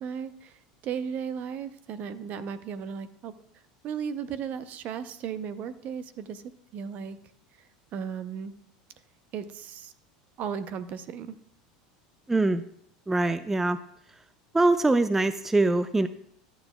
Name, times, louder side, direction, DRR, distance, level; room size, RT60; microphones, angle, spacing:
voice 1, 0.0-3.3 3.8-7.2 7.9-8.5 9.3-9.9 10.4-11.4, right 7 dB, 50° right, 13 dB, 0.6 m, -35 dB
voice 2, 12.3-12.6 13.1-13.8 14.1-14.2 14.5-16.1, right 2 dB, 10° right, 13 dB, 0.3 m, -23 dB
12.0 x 8.7 x 2.3 m, 0.69 s
hypercardioid pair, 95°, 4 cm